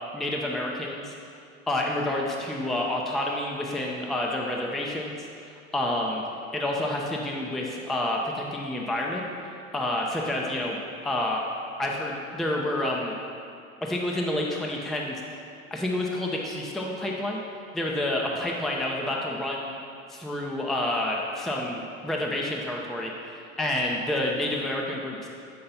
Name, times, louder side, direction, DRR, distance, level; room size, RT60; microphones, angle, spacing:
voice 1, 0.1-1.1 1.7-6.2 6.5-9.2 9.7-10.8 11.0-11.4 11.8-13.1 13.8-15.4 15.7-17.4 17.7-19.7 20.1-25.3, left 1 dB, ahead, -1 dB, 0.6 m, -29 dB
7.4 x 5.7 x 4.2 m, 2.5 s
figure-of-eight pair, 80°, 41 cm